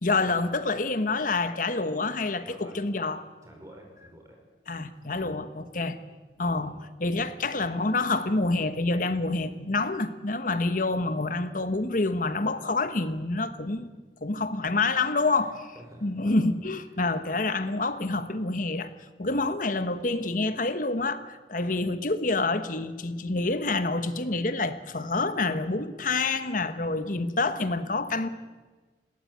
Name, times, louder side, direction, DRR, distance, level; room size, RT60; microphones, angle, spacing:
voice 1, 0.0-3.2 4.7-6.0 6.4-13.9 14.2-15.7 16.0-18.9 19.2-28.3, left 3 dB, 50° left, 1.3 m, -27 dB
voice 2, 2.4-2.8 3.4-4.4 5.1-5.4 6.5-6.8 15.4-16.5 19.2-19.5, equal, 20° right, 5.4 m, -50 dB
21.0 x 17.0 x 9.4 m
head